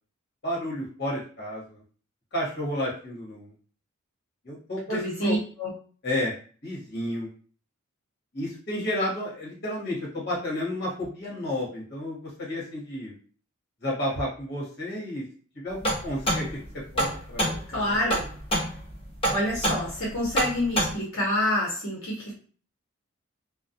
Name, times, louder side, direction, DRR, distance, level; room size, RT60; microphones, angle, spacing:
voice 1, 0.4-1.8 2.3-3.5 4.4-5.4 6.0-6.3 6.6-7.3 8.3-13.1 13.8-15.2 15.5-16.5 16.9-18.0, left 1 dB, 50° left, -4 dB, 1.1 m, -31 dB
voice 2, 4.9-5.7 17.7-18.2 19.3-22.3, left 1 dB, 70° left, -5 dB, 0.8 m, -27 dB
sound 1, 15.8-20.9, right 1 dB, 25° left, 0.8 m, -27 dB
2.3 x 2.1 x 2.6 m, 0.42 s
head